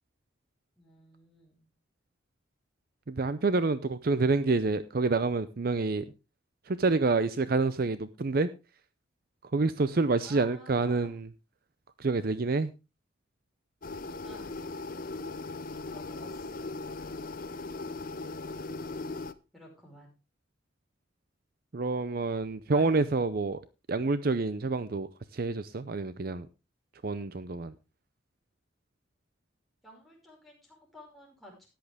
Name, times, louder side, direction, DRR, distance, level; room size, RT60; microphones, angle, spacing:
voice 1, 0.8-1.6 10.2-11.2 14.2-14.6 15.9-16.7 19.5-20.1 22.7-23.0 29.8-31.7, left 1 dB, ahead, -3 dB, 5.4 m, -52 dB
voice 2, 3.1-6.1 6.7-8.5 9.5-11.3 12.0-12.7 21.7-23.6 23.9-26.5 27.0-27.7, right 3 dB, 50° right, 14 dB, 0.6 m, -28 dB
sound 1, 13.8-19.3, left 3 dB, 45° left, 0.7 m, -38 dB
13.5 x 10.5 x 3.5 m, 0.28 s
head